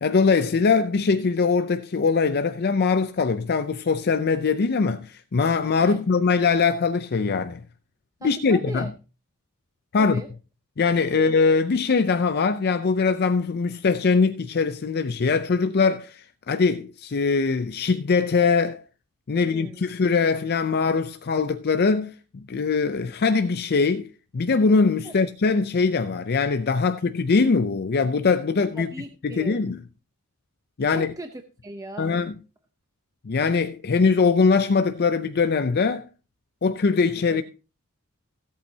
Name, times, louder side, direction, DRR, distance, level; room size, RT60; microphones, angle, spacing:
voice 1, 0.0-7.6 8.2-8.9 9.9-10.2 10.8-18.8 19.3-28.9 29.2-29.8 30.8-31.1 32.0-32.4 33.2-36.1 36.6-37.4, left 4 dB, 45° left, 0.5 m, -22 dB
voice 2, 8.2-8.9 10.0-10.3 11.1-11.2 19.3-19.9 25.0-25.1 28.8-29.7 30.9-32.2 37.3-37.4, right 1 dB, 15° right, 0.7 m, -38 dB
16.0 x 8.4 x 2.8 m
head